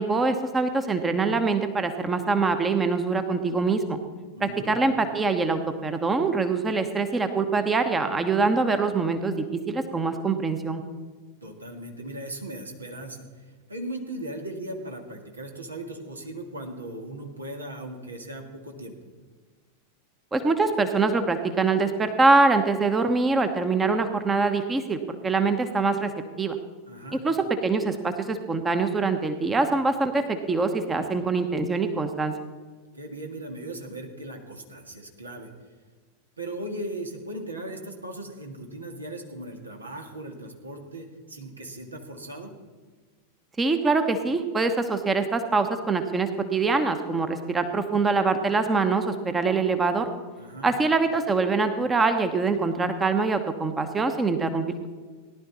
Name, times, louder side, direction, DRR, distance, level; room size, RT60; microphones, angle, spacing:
voice 1, 0.0-4.0 4.4-10.8 20.3-26.1 26.4-26.6 27.2-32.3 43.6-50.1 50.6-54.9, right 3 dB, 15° right, 8 dB, 1.0 m, -24 dB
voice 2, 4.4-4.8 11.4-19.0 26.9-27.2 32.9-35.5 36.4-42.5 50.4-50.7, right 1 dB, 80° right, 3 dB, 2.0 m, -38 dB
18.0 x 11.5 x 4.1 m, 1.5 s
figure-of-eight pair, 90°, 0 cm